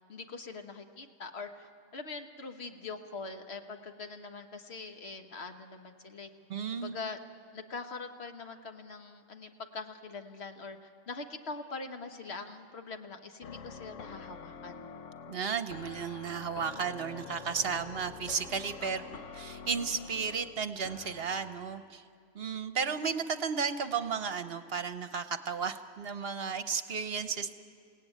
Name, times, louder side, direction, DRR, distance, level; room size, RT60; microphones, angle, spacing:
voice 1, 0.1-6.3 6.7-7.2 7.5-14.8 18.8-19.1, left 4 dB, 60° left, 6 dB, 1.5 m, -43 dB
voice 2, 6.5-7.0 15.3-19.0 19.3-22.0 22.3-27.5, right 6 dB, 55° right, 10 dB, 1.0 m, -34 dB
sound 1, 13.4-21.9, left 5 dB, 85° left, 1.3 m, -47 dB
29.0 x 17.5 x 9.2 m, 2.3 s
omnidirectional pair, 1.2 m